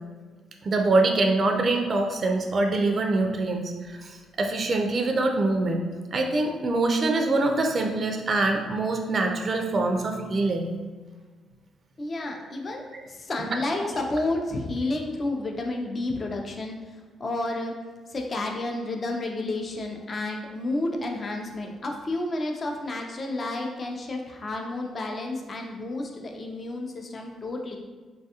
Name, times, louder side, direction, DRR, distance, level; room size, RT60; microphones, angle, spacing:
voice 1, 0.6-5.8 6.1-10.7, right 2 dB, 40° right, 3 dB, 0.3 m, -24 dB
voice 2, 12.0-16.8 17.2-17.7 18.1-27.8, left 2 dB, 40° left, 2 dB, 0.4 m, -31 dB
3.3 x 2.3 x 2.8 m, 1.4 s
cardioid pair, 90°, 0 cm